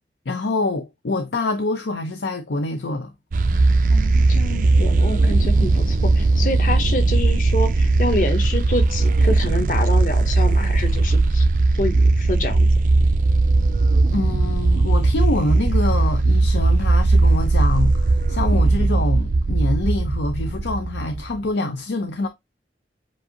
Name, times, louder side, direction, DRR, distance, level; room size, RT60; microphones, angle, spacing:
voice 1, 0.3-3.1 14.1-22.3, left 2 dB, 80° left, 0.6 m, -25 dB
sound 1, 3.3-21.4, right 2 dB, 50° right, 0.4 m, -18 dB
voice 2, 3.9-11.5 11.8-12.7, left 1 dB, 50° left, 1.0 m, -27 dB
7.4 x 2.6 x 2.8 m
head